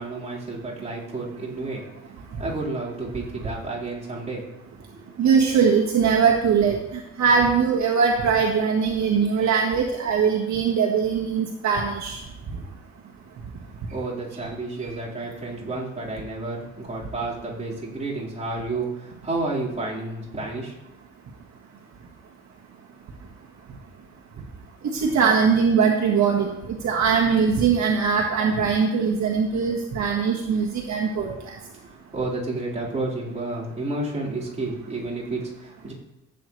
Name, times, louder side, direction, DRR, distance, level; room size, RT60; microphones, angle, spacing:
voice 1, 0.0-1.8 2.4-4.4 4.9-5.0 13.9-20.8 31.7-35.9, right 2 dB, 25° right, -7 dB, 4.5 m, -31 dB
voice 2, 5.2-6.7 7.2-12.2 25.0-26.5 26.8-31.3, right 6 dB, 65° right, -1 dB, 1.6 m, -21 dB
15.0 x 8.3 x 3.3 m, 0.90 s
cardioid pair, 90°, 30 cm